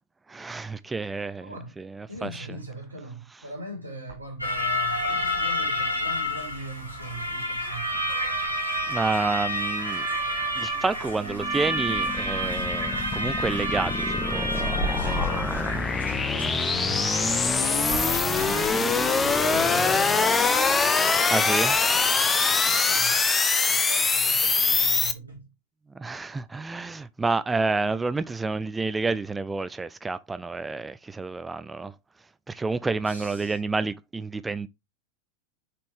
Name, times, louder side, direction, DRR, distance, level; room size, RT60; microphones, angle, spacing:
voice 1, 0.3-1.5 1.8-2.5 8.9-10.0 10.5-15.8 21.0-22.7 25.9-31.9 32.5-34.7, right 3 dB, 10° right, 0.4 m, -30 dB
voice 2, 1.4-1.8 2.1-7.9 15.0-17.2 18.3-20.3 22.6-23.3 23.6-25.5 33.1-33.6, right 2 dB, 80° right, 2.7 m, -41 dB
sound 1, 4.4-18.7, equal, 90° left, 3.9 m, -29 dB
sound 2, 11.2-25.1, left 4 dB, 15° left, 0.7 m, -24 dB
6.8 x 4.3 x 3.3 m
figure-of-eight pair, 90°, 0 cm